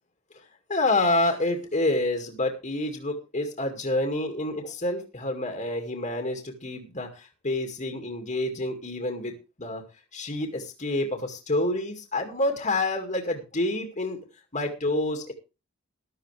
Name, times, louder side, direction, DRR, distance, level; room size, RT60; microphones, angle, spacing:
voice 1, 0.7-9.3 9.6-9.8 10.1-14.2 14.5-15.3, left 2 dB, 35° left, 4 dB, 2.2 m, -28 dB
14.0 x 12.5 x 3.4 m, 0.29 s
head